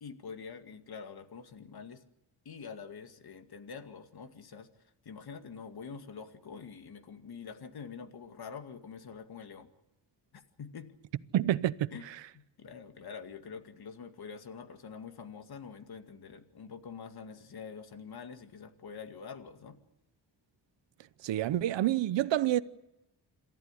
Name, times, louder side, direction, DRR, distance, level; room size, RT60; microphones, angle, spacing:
voice 1, 0.0-2.0 2.5-4.7 5.0-9.7 10.3-10.9 11.9-12.1 12.3-19.8, left 6 dB, 60° left, 2.2 m, -46 dB
voice 2, 11.3-12.2 21.2-22.6, right 13 dB, 85° right, 0.9 m, -28 dB
27.5 x 14.0 x 9.8 m
cardioid pair, 100°, 43 cm